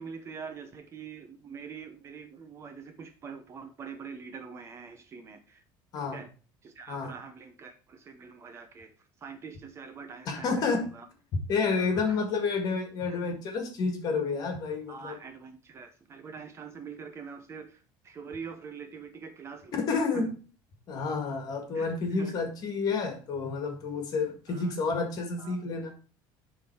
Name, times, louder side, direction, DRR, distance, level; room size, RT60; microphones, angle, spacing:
voice 1, 0.0-5.6 6.1-6.3 6.6-8.9 9.2-11.1 11.7-12.2 13.1-13.2 14.9-20.3 21.7-21.9 22.2-22.3 24.5-24.7 25.4-25.6, right 6 dB, 30° right, 0.9 m, -44 dB
voice 2, 10.3-10.9 11.3-15.2 19.7-20.3 20.9-26.0, left 4 dB, 45° left, 1.9 m, -30 dB
10.0 x 3.7 x 4.6 m
cardioid pair, 155°, 9 cm